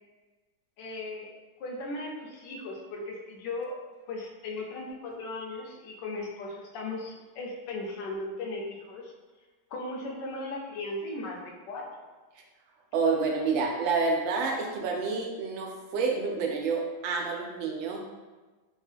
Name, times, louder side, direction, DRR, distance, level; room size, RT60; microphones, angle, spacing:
voice 1, 0.8-1.3 1.6-3.8 4.1-9.1 9.7-11.9, left 2 dB, 75° left, -1 dB, 1.2 m, -37 dB
voice 2, 12.9-18.0, right 4 dB, 90° right, 2 dB, 1.3 m, -28 dB
3.5 x 2.2 x 3.2 m, 1.3 s
omnidirectional pair, 2.0 m